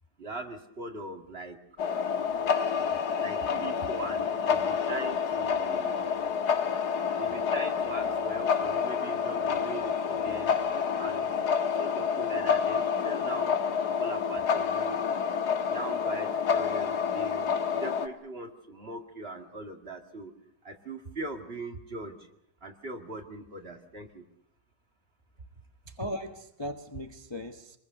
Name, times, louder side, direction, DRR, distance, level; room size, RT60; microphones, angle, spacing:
voice 1, 0.2-1.6 3.2-6.0 7.2-10.6 11.0-11.3 11.8-13.6 14.0-15.0 15.6-20.3 20.6-22.3 22.6-24.2, right 2 dB, 40° right, 4 dB, 2.2 m, -40 dB
sound 1, 1.8-18.1, left 6 dB, 80° left, 1.8 m, -28 dB
voice 2, 25.9-27.8, equal, 20° left, 4 dB, 1.1 m, -38 dB
27.0 x 21.0 x 6.7 m, 0.79 s
omnidirectional pair, 1.7 m